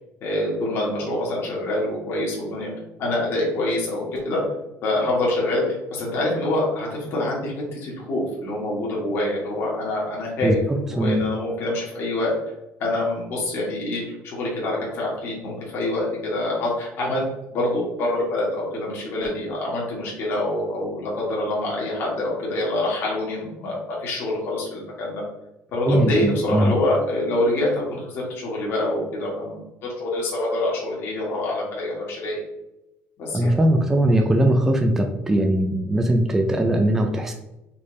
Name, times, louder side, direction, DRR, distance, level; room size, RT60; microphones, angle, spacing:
voice 1, 0.2-2.7 3.0-4.4 4.8-12.3 12.8-17.2 17.5-25.2 25.7-32.4 33.2-33.5, left 1 dB, 45° left, -4 dB, 1.5 m, -26 dB
voice 2, 25.8-26.7 33.3-37.3, right 1 dB, 10° right, 3 dB, 0.3 m, -20 dB
4.2 x 3.4 x 3.1 m, 0.93 s
cardioid pair, 170°, 5 cm